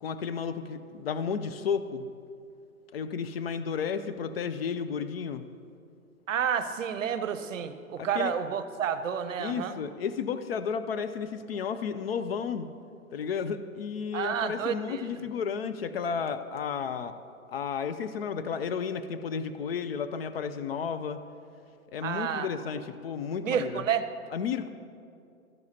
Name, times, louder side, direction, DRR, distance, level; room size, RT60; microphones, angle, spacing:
voice 1, 0.0-2.1 2.9-5.4 8.0-8.3 9.4-12.7 13.1-17.1 17.5-21.2 21.9-23.8 24.3-24.7, left 6 dB, 45° left, 10 dB, 0.4 m, -32 dB
voice 2, 6.3-9.8 14.1-15.1 22.0-22.5 23.4-24.0, right 8 dB, 65° right, 11 dB, 0.7 m, -30 dB
12.0 x 10.5 x 2.8 m, 2.4 s
figure-of-eight pair, 120°, 42 cm